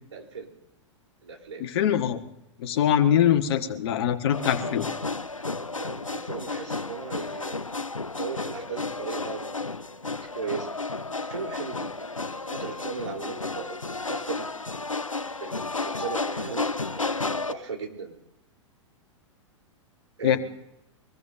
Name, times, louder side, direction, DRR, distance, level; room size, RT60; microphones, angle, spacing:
voice 1, 0.1-0.5 1.2-1.7 5.8-7.6 8.0-9.6 10.2-10.7 11.2-14.5 15.4-16.7 16.9-18.2 20.2-20.4, right 5 dB, 70° right, 1 dB, 3.9 m, -37 dB
voice 2, 1.6-2.2 2.6-4.9 20.2-20.4, left 9 dB, 50° left, 8 dB, 1.5 m, -23 dB
sound 1, 4.3-17.5, left 3 dB, 90° left, 0.6 m, -32 dB
23.5 x 21.0 x 2.7 m, 0.86 s
figure-of-eight pair, 100°, 16 cm